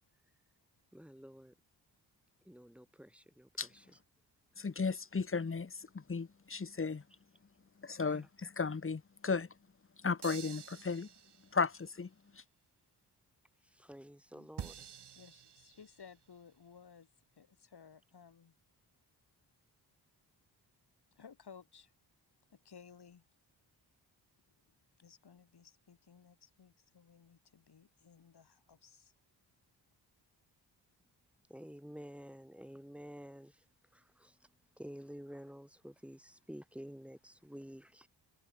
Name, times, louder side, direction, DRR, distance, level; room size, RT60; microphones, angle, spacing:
voice 1, 0.9-1.5 2.4-4.0 7.1-7.2 8.0-8.3 13.6-14.9 31.5-33.6 33.9-34.5 34.8-38.1, equal, 5° right, 7.4 m, -51 dB
voice 2, 4.6-5.7 6.1-7.0 7.8-8.2 8.6-9.5 10.0-11.1 11.5-12.1, left 4 dB, 30° left, 1.4 m, -34 dB
sound 1, 10.2-11.7 14.6-16.2, right 8 dB, 60° right, 2.0 m, -49 dB
voice 3, 15.2-17.1 17.3-18.5 21.2-21.9 22.5-23.2 25.0-29.1, left 6 dB, 60° left, 5.6 m, -58 dB
cardioid pair, 55°, 45 cm